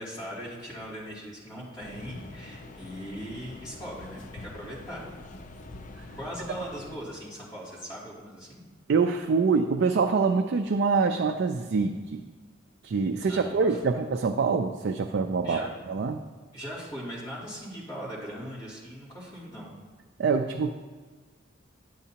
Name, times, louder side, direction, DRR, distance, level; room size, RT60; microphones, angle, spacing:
voice 1, 0.0-5.1 6.2-8.6 13.3-14.0 15.4-15.7 16.5-19.7, equal, 20° left, -8 dB, 2.7 m, -40 dB
sound 1, 1.8-7.0, left 2 dB, 40° left, 0.5 m, -45 dB
voice 2, 8.9-12.2 12.8-16.2 20.2-20.7, right 4 dB, 55° right, 5 dB, 0.4 m, -25 dB
10.0 x 8.0 x 2.9 m, 1.4 s
head